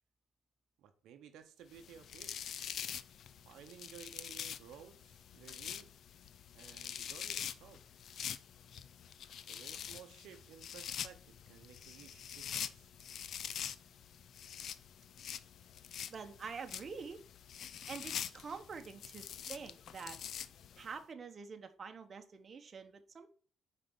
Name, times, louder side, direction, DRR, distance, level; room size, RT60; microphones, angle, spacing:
voice 1, 0.8-2.3 3.4-5.9 6.5-7.8 9.5-12.9, right 8 dB, 85° right, 7 dB, 0.7 m, -56 dB
sound 1, 1.7-20.9, left 9 dB, 65° left, 0.4 m, -45 dB
voice 2, 16.1-17.2 17.9-20.2 20.8-23.3, right 5 dB, 45° right, 7 dB, 0.9 m, -46 dB
5.2 x 4.1 x 5.9 m, 0.42 s
cardioid pair, 90°, 0 cm